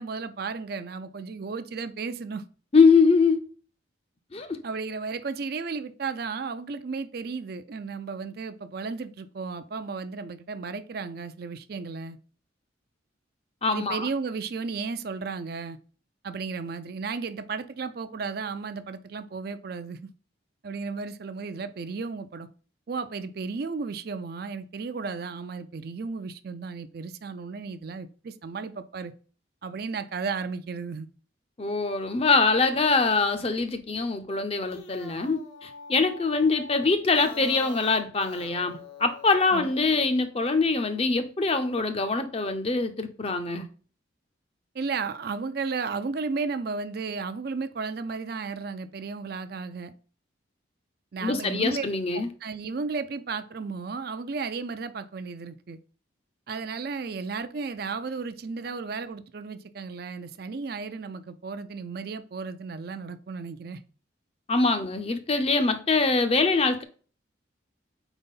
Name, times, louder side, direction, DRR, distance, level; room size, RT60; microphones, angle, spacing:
voice 1, 0.0-2.4 4.6-12.2 13.7-15.8 16.2-20.1 20.6-22.5 22.9-29.1 29.6-31.1 39.5-39.7 44.7-49.9 51.1-51.8 52.1-55.8 56.5-63.8, right 4 dB, 50° right, 0.4 m, -34 dB
voice 2, 2.7-3.4 4.3-4.6 13.6-14.1 31.6-43.7 51.2-52.3 64.5-66.8, left 4 dB, 30° left, 0.6 m, -23 dB
sound 1, 34.5-40.0, left 3 dB, 80° left, 1.0 m, -44 dB
4.4 x 4.0 x 5.5 m
head